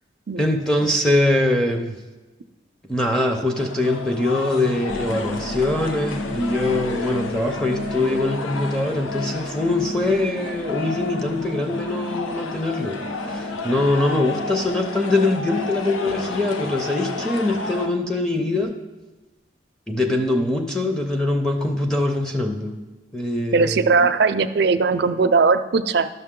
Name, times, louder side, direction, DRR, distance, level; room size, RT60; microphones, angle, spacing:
voice 1, 0.4-2.0 2.9-18.8 19.9-22.8 23.1-23.9, left 2 dB, 5° left, 1 dB, 0.5 m, -23 dB
sound 1, 3.6-17.9, left 3 dB, 90° left, 0.7 m, -32 dB
sound 2, 4.9-18.6, left 2 dB, 50° left, 1.4 m, -35 dB
voice 2, 23.5-26.1, right 4 dB, 55° right, 10 dB, 0.4 m, -19 dB
12.0 x 6.2 x 3.7 m, 1.2 s
head